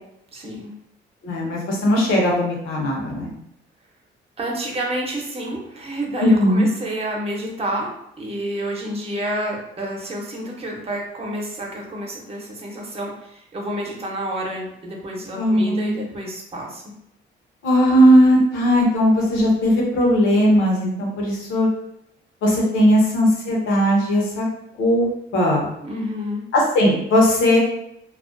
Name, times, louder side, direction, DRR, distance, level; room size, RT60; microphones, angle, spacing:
voice 1, 0.3-0.7 4.4-16.8 22.6-22.8 25.8-26.4, right 1 dB, 30° right, -1 dB, 0.7 m, -29 dB
voice 2, 1.2-3.3 6.2-6.7 15.4-16.0 17.6-21.7 22.4-24.5 24.8-25.7 26.5-27.6, equal, 85° left, -2 dB, 0.8 m, -18 dB
2.3 x 2.1 x 2.5 m, 0.79 s
cardioid pair, 90°, 20 cm